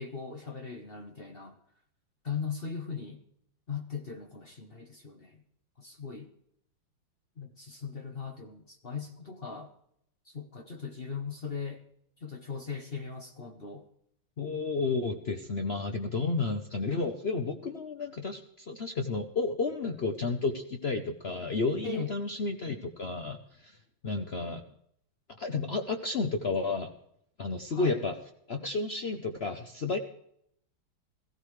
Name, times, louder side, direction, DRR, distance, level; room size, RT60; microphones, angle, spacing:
voice 1, 0.0-1.6 2.2-3.2 3.7-5.4 5.8-6.3 7.4-9.7 10.3-11.8 12.2-13.9 16.2-16.4 21.8-22.1 27.7-28.0, left 5 dB, 40° left, 4 dB, 0.9 m, -38 dB
voice 2, 14.4-23.8 24.0-24.6 25.4-26.9 27.4-28.1 28.5-30.0, left 3 dB, 75° left, 5 dB, 0.5 m, -32 dB
17.5 x 15.0 x 3.2 m, 0.69 s
omnidirectional pair, 2.3 m